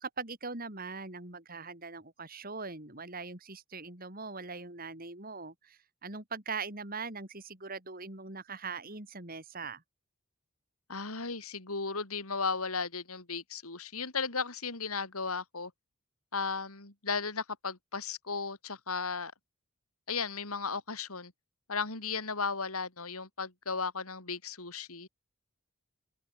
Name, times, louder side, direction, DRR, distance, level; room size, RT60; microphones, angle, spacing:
voice 1, 0.0-9.8, right 4 dB, 40° right, 3.8 m, -41 dB
voice 2, 10.9-15.7 16.3-19.3 20.1-21.3 21.7-25.1, left 4 dB, 85° left, 3.9 m, -35 dB
open air
head